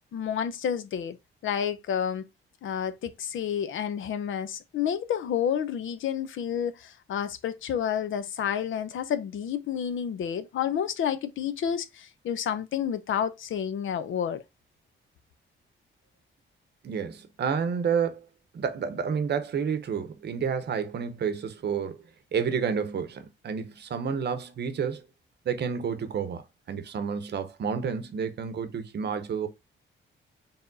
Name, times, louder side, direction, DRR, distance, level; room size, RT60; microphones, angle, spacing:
voice 1, 0.1-1.2 1.4-2.3 2.6-14.4, left 8 dB, 70° left, 0.6 m, -30 dB
voice 2, 16.8-18.2 18.5-22.0 22.3-25.0 25.5-29.5, right 6 dB, 55° right, 0.8 m, -30 dB
4.4 x 3.5 x 2.6 m
wide cardioid pair, 135°, 21 cm